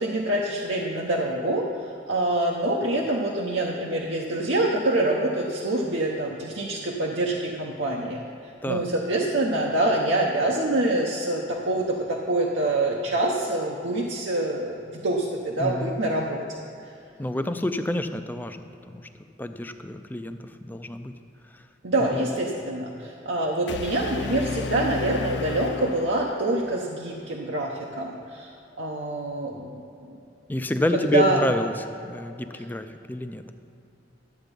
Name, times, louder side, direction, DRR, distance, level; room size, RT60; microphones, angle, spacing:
voice 1, 0.0-1.7 2.1-8.2 8.7-16.4 21.8-28.5 28.8-30.2 31.0-31.4, right 2 dB, 85° right, -2 dB, 0.9 m, -26 dB
voice 2, 15.6-16.0 17.2-19.0 19.4-21.1 30.5-31.7 32.0-33.4, left 1 dB, 10° left, 8 dB, 0.4 m, -28 dB
sound 1, 23.7-26.7, left 5 dB, 65° left, 0.5 m, -33 dB
12.0 x 8.0 x 5.3 m, 2.8 s
head